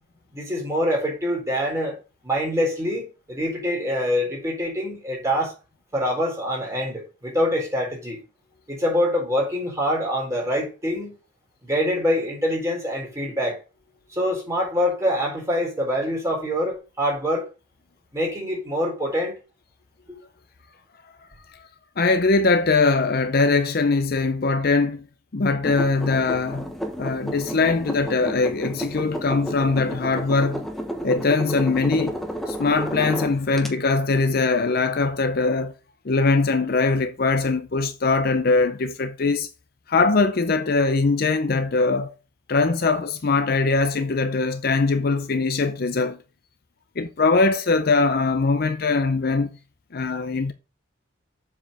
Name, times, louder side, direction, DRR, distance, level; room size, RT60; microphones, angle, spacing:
voice 1, 0.3-2.0 2.2-5.5 5.9-8.2 8.7-11.1 11.6-13.6 14.1-17.5 18.1-19.3, equal, 15° right, 4.1 m, -25 dB
voice 2, 22.0-25.0 25.3-26.7 27.0-30.6 31.0-32.2 32.5-35.7 36.1-39.5 39.9-42.1 42.5-46.2 47.0-49.5 49.9-50.5, left 3 dB, 45° left, 0.5 m, -21 dB
sound 1, 25.6-33.7, equal, ahead, 1.0 m, -32 dB
7.4 x 4.7 x 6.6 m
head